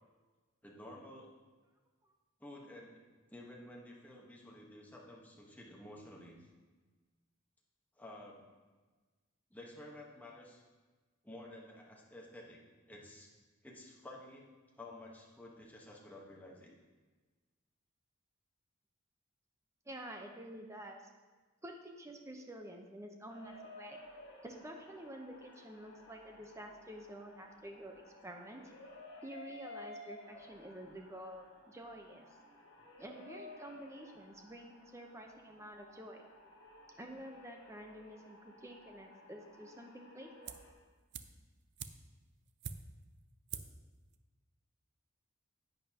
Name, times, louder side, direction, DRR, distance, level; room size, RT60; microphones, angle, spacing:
voice 1, 0.6-1.3 2.4-6.4 8.0-8.4 9.5-10.6 11.2-12.6 12.9-13.3 13.6-14.4 14.8-16.7, left 1 dB, 10° left, -2 dB, 1.3 m, -52 dB
voice 2, 19.8-21.0 21.6-24.0 24.4-28.6 29.2-32.3 33.0-36.2 37.0-40.5, right 1 dB, 15° right, 2 dB, 0.9 m, -49 dB
sound 1, 23.3-40.7, left 1 dB, 60° left, 1.5 m, -55 dB
sound 2, 40.5-40.8 41.1-43.1 43.5-43.9 44.1-44.2, right 7 dB, 55° right, 0.5 m, -46 dB
10.5 x 9.1 x 2.9 m, 1.3 s
head